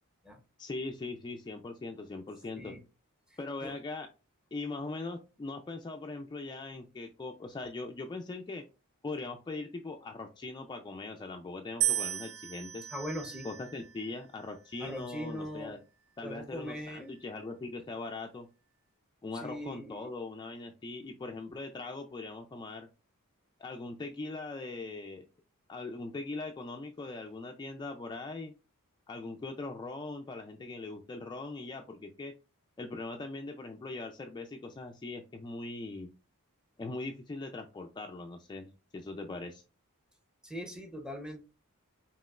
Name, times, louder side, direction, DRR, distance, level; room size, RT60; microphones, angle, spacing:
voice 1, 0.6-2.7 3.4-4.1 4.5-8.6 9.0-12.9 13.4-15.8 16.2-18.5 19.2-22.9 23.6-25.3 25.7-28.5 29.1-32.3 32.8-36.1 36.8-39.6, left 3 dB, 20° left, 3 dB, 0.3 m, -40 dB
voice 2, 3.3-3.7 12.9-13.5 14.8-15.8 16.2-17.1 19.3-20.1 40.4-41.4, equal, 5° right, 3 dB, 0.7 m, -40 dB
sound 1, 11.8-14.0 14.8-15.4, right 13 dB, 65° right, 0.5 m, -35 dB
5.1 x 2.9 x 2.3 m, 0.31 s
head